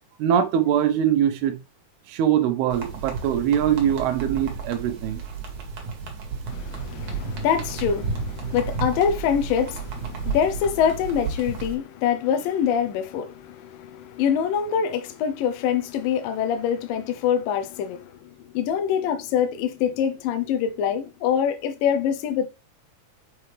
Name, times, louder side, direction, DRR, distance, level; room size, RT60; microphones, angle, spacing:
voice 1, 0.2-1.6 2.1-5.2, right 9 dB, 80° right, 2.8 m, -22 dB
sound 1, 2.7-11.7, right 4 dB, 55° right, 2.8 m, -32 dB
voice 2, 6.5-22.5, left 8 dB, 75° left, 2.2 m, -25 dB
6.9 x 5.9 x 3.3 m
omnidirectional pair, 4.5 m